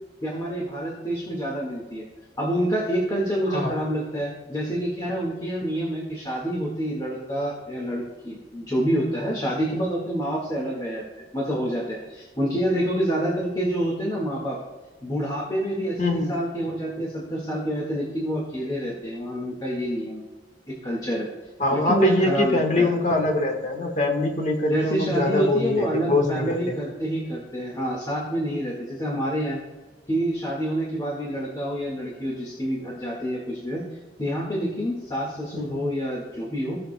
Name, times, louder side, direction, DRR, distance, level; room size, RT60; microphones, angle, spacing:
voice 1, 0.2-2.1 2.4-11.0 11.3-14.6 15.0-20.2 20.7-21.3 21.7-22.9 24.7-29.6 30.1-33.8 34.2-36.8, equal, 20° left, -4 dB, 1.7 m, -27 dB
voice 2, 3.5-3.8 16.0-16.3 21.6-26.8 35.5-35.9, left 2 dB, 40° left, 2 dB, 1.3 m, -23 dB
17.0 x 6.6 x 2.2 m, 1.3 s
head